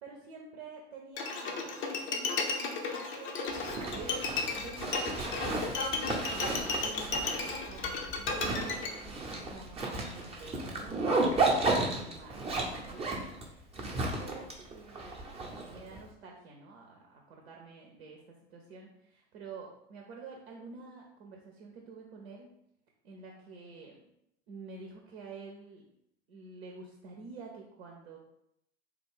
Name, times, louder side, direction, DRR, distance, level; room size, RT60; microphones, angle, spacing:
voice 1, 0.0-5.8 6.0-22.5 23.0-24.1 24.5-25.8 26.3-28.2, right 4 dB, 65° right, 0 dB, 0.7 m, -49 dB
Bowed string instrument, 1.2-8.9, left 4 dB, 35° left, 0.6 m, -34 dB
Zipper (clothing), 3.5-16.0, right 2 dB, 20° right, 0.7 m, -34 dB
3.5 x 2.3 x 3.5 m, 0.77 s
figure-of-eight pair, 70°, 33 cm